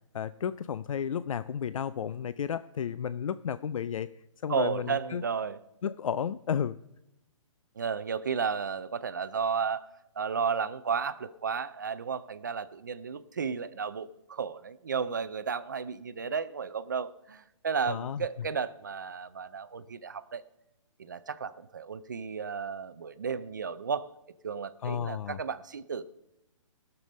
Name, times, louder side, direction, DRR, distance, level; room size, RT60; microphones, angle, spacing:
voice 1, 0.1-4.1 4.4-5.2 5.8-6.8 17.9-18.2 24.8-25.4, left 8 dB, 85° left, 16 dB, 0.4 m, -32 dB
voice 2, 4.5-5.6 7.8-9.9 10.2-20.4 21.0-24.1 24.4-26.0, right 6 dB, 35° right, 13 dB, 0.4 m, -33 dB
16.0 x 6.8 x 5.3 m, 0.90 s
hypercardioid pair, 175°, 17 cm